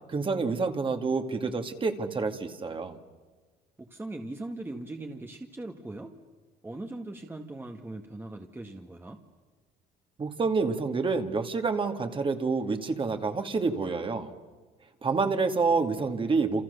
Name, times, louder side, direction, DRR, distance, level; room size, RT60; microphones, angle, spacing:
voice 1, 0.1-3.0 10.2-14.3 15.0-16.6, right 4 dB, 30° right, 6 dB, 2.3 m, -28 dB
voice 2, 3.8-6.1 6.6-9.2, right 2 dB, 10° right, 3 dB, 1.7 m, -40 dB
28.5 x 28.0 x 6.8 m, 1.3 s
cardioid pair, 110°, 17 cm